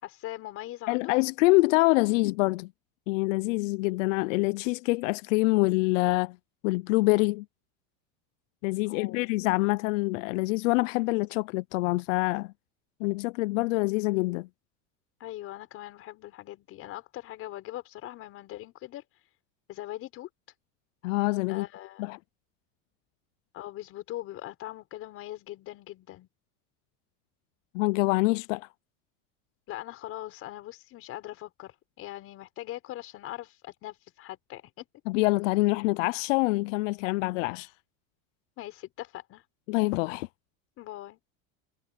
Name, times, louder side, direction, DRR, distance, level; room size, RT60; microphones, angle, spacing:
voice 1, 0.0-1.1 8.9-9.3 15.2-19.0 19.7-20.3 21.5-22.1 23.5-26.3 29.7-34.9 38.6-39.4 40.8-41.2, left 15 dB, 35° left, 6.0 m, -41 dB
voice 2, 0.9-2.7 3.1-6.4 6.6-7.5 8.6-12.5 13.0-14.5 21.0-21.7 22.0-22.2 27.7-28.7 35.1-37.7 39.7-40.3, left 23 dB, 90° left, 0.5 m, -25 dB
cardioid pair, 170°, 37 cm